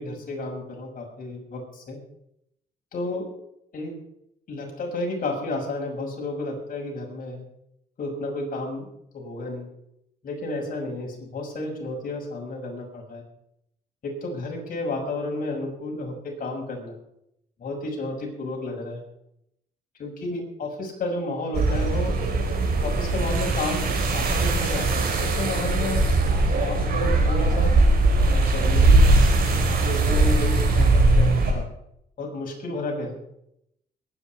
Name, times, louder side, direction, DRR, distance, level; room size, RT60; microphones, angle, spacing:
voice 1, 0.0-2.0 2.9-3.3 3.7-4.0 4.5-7.5 8.0-8.9 9.1-9.7 10.2-13.2 14.0-16.9 17.6-19.0 20.0-22.1 22.8-26.1 26.6-27.8 28.3-29.1 29.8-31.6 32.2-33.2, left 2 dB, 55° left, 0 dB, 6.4 m, -31 dB
sound 1, 21.5-31.5, right 2 dB, 65° right, 4.8 m, -20 dB
22.5 x 10.0 x 4.6 m, 0.76 s
cardioid pair, 95°, 17 cm